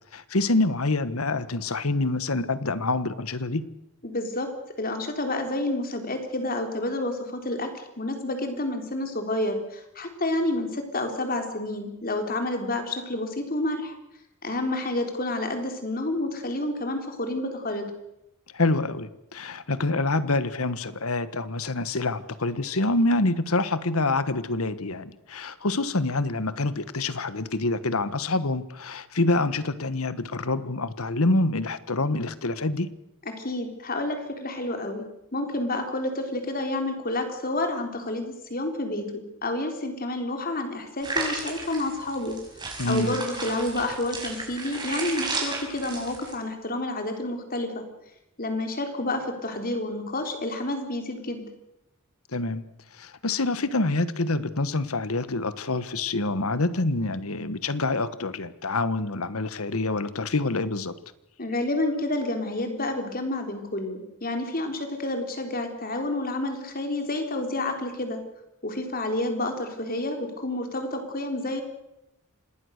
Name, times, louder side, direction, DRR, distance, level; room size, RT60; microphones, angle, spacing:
voice 1, 0.1-3.6 18.5-32.9 42.8-43.2 52.3-52.6 53.0-60.9, left 2 dB, 80° left, 14 dB, 1.4 m, -26 dB
voice 2, 4.0-4.5 4.8-13.9 14.4-17.9 33.3-35.0 35.3-42.4 42.9-47.8 48.4-51.4 61.4-68.2 68.6-71.6, left 1 dB, 40° left, 5 dB, 3.9 m, -29 dB
sound 1, 41.0-46.3, right 3 dB, 20° right, 5.8 m, -33 dB
26.5 x 19.5 x 6.6 m, 0.85 s
head